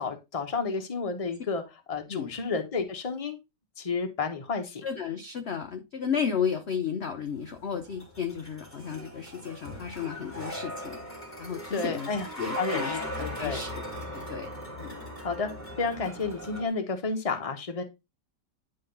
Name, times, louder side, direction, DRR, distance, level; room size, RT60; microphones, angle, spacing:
voice 1, 0.0-1.6 1.9-3.4 3.8-4.9 11.7-13.6 15.2-15.5 15.8-17.8, left 4 dB, 25° left, 5 dB, 1.0 m, -31 dB
voice 2, 4.8-11.0 11.4-12.1 12.4-13.8 14.1-14.5 14.8-15.0, left 7 dB, 50° left, 6 dB, 0.8 m, -33 dB
sound 1, 7.4-16.7, equal, 5° left, 2.0 m, -39 dB
10.0 x 3.9 x 3.9 m, 0.24 s
omnidirectional pair, 1.9 m